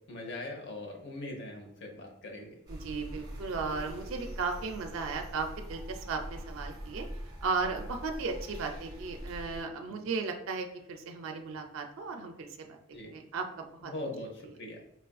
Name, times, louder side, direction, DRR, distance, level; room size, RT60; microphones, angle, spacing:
voice 1, 0.1-2.6 9.9-10.1 12.9-13.1 13.8-14.8, left 2 dB, 50° left, 1 dB, 0.8 m, -41 dB
sound 1, 2.7-9.6, equal, 15° right, 0.6 m, -43 dB
voice 2, 2.8-7.1 7.4-12.8 13.1-13.4 13.8-13.9, right 4 dB, 65° right, 4 dB, 0.4 m, -35 dB
4.4 x 2.4 x 2.3 m, 0.75 s
head